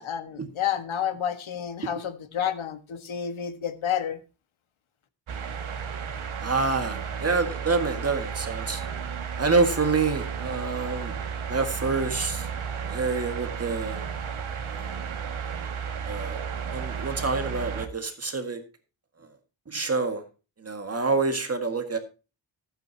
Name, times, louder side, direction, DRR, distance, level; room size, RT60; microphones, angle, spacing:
voice 1, 0.0-4.2, left 9 dB, 80° left, 1.6 m, -30 dB
sound 1, 5.3-17.9, right 6 dB, 85° right, 1.9 m, -33 dB
voice 2, 6.4-8.8 9.4-11.2 11.5-12.5 12.9-14.0 14.7-15.0 16.1-16.4 16.7-18.6 19.7-20.2 20.6-22.0, right 4 dB, 30° right, 1.8 m, -27 dB
15.5 x 9.1 x 2.8 m
wide cardioid pair, 160°, 47 cm